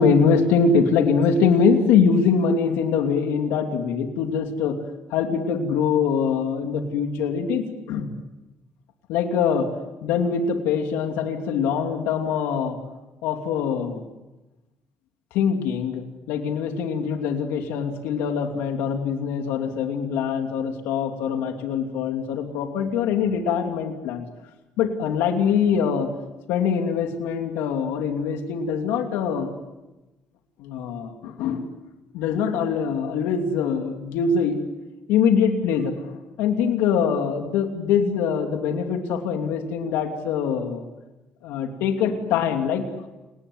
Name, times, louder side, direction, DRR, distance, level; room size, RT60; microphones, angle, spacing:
voice 1, 0.0-4.8 5.1-8.1 9.1-9.7 10.0-12.8 13.2-14.0 15.3-24.2 24.8-26.1 26.5-29.5 30.6-31.7 32.1-34.6 35.1-36.0 36.4-40.8 41.4-43.1, left 6 dB, 85° left, 4 dB, 2.9 m, -23 dB
29.0 x 19.0 x 8.1 m, 1.0 s
supercardioid pair, 75°, 4 cm